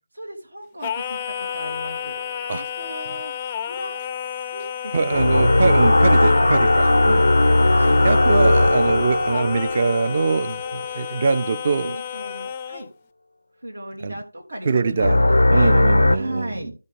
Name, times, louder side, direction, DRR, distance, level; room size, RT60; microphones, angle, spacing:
voice 1, 0.1-2.2 2.6-4.1 4.5-5.3 6.3-6.4 7.6-8.0 11.8-12.9 13.6-15.8 16.1-16.8, right 1 dB, 80° right, 2.5 m, -36 dB
Singing, 0.8-12.9, left 8 dB, 20° left, 0.4 m, -31 dB
voice 2, 4.9-7.3 7.9-12.0 14.0-14.2 14.6-15.2 15.5-16.7, right 4 dB, 35° right, 0.6 m, -23 dB
sound 1, 5.1-10.9 15.0-16.2, left 1 dB, 80° left, 0.4 m, -17 dB
15.0 x 5.6 x 3.5 m
figure-of-eight pair, 165°, 0 cm